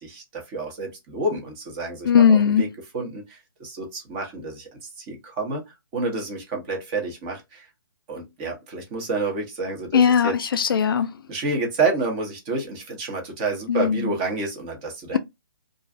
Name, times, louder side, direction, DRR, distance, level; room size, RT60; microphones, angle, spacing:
voice 1, 0.0-2.7 2.9-5.6 5.9-7.7 8.1-10.3 10.7-10.8 11.3-15.2, right 3 dB, 20° right, 0.8 m, -29 dB
voice 2, 2.0-2.7 9.9-11.2 13.7-14.1 15.1-15.2, left 7 dB, 65° left, 0.4 m, -19 dB
2.4 x 2.3 x 2.4 m
hypercardioid pair, 155°, 13 cm